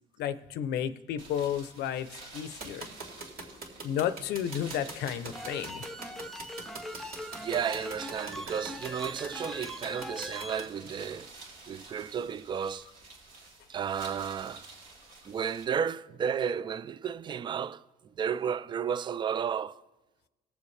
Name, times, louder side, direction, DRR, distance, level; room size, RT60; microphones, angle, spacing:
voice 1, 0.2-2.9 3.8-5.8, left 9 dB, 75° left, 0.6 m, -32 dB
sound 1, 1.2-15.6, right 3 dB, 80° right, 3.6 m, -51 dB
sound 2, 2.6-10.6, right 3 dB, 60° right, 2.7 m, -42 dB
sound 3, 5.3-10.7, left 1 dB, ahead, 0.7 m, -41 dB
voice 2, 7.4-11.3 11.7-12.9 13.7-14.6 15.3-17.8 18.2-19.8, right 7 dB, 30° right, 0.3 m, -33 dB
19.5 x 7.1 x 3.3 m
cardioid pair, 110°, 17 cm